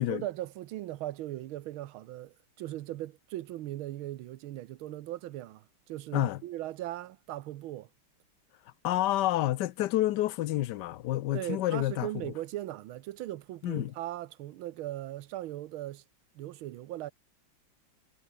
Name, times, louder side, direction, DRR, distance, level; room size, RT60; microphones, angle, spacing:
voice 1, 0.0-7.9 11.3-16.0 16.4-17.1, right 14 dB, 85° right, 1.6 m, -39 dB
voice 2, 8.8-12.1 13.6-13.9, left 15 dB, 65° left, 1.1 m, -29 dB
omnidirectional pair, 2.2 m